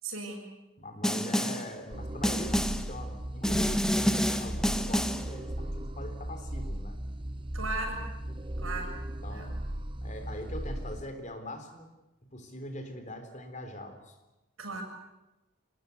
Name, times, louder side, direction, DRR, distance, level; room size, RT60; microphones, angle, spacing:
voice 1, 0.0-0.4 7.5-8.1 8.6-9.0 9.3-9.5 14.6-14.8, right 3 dB, 85° right, 2 dB, 7.3 m, -36 dB
voice 2, 0.8-7.0 9.2-9.6 10.0-11.9 12.3-14.2, left 1 dB, 35° left, 7 dB, 3.5 m, -42 dB
Snare drum, 1.0-1.7 2.2-2.9 3.4-5.3, equal, 5° left, 1.0 m, -28 dB
sound 1, 1.9-11.0, right 1 dB, 25° right, 0.9 m, -37 dB
26.0 x 20.5 x 8.3 m, 1.0 s
head